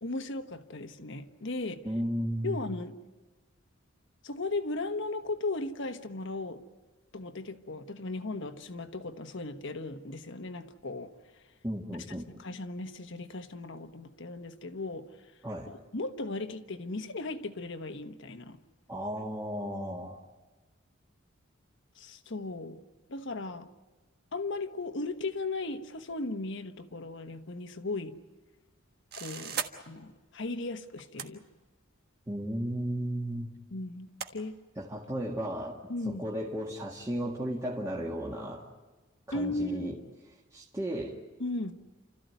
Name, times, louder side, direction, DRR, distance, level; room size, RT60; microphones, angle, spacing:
voice 1, 0.0-1.8 2.4-2.9 4.2-6.6 7.1-11.1 12.4-15.1 15.7-18.6 22.0-22.8 23.1-23.7 24.3-28.2 29.2-31.4 33.7-34.6 35.9-36.2 39.3-40.0 41.4-41.7, left 2 dB, 60° left, 1.2 m, -36 dB
voice 2, 1.8-2.6 11.6-12.3 15.4-15.7 18.9-20.2 32.3-33.5 34.7-35.8 36.0-38.7 39.3-40.0 40.5-41.2, equal, 15° right, 1.8 m, -34 dB
sound 1, 29.1-29.7 31.0-31.3 32.4-32.5 34.2-34.3, right 7 dB, 50° right, 1.5 m, -35 dB
29.5 x 14.0 x 9.4 m
head